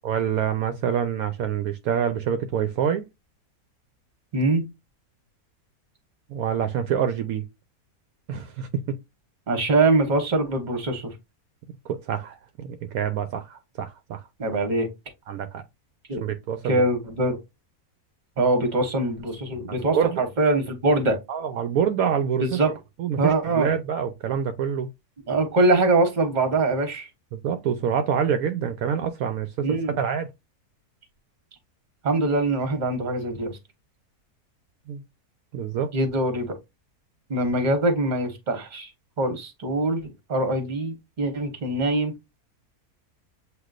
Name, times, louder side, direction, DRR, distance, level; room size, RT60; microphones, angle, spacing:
voice 1, 0.0-3.1 6.3-7.5 8.3-8.7 11.9-14.2 15.3-15.6 16.2-16.8 19.9-20.2 21.3-22.6 23.0-24.9 27.3-30.3 34.9-35.0 35.5-35.9, right 8 dB, 75° right, 1.0 m, -26 dB
voice 2, 4.3-4.6 9.5-11.1 14.4-14.9 16.1-16.2 16.6-17.4 18.4-21.2 22.4-22.7 23.2-23.7 25.3-27.1 29.6-30.0 32.0-33.6 35.9-36.5 37.3-38.9 39.2-42.1, right 2 dB, 35° right, 1.1 m, -23 dB
7.9 x 2.7 x 2.4 m
omnidirectional pair, 1.6 m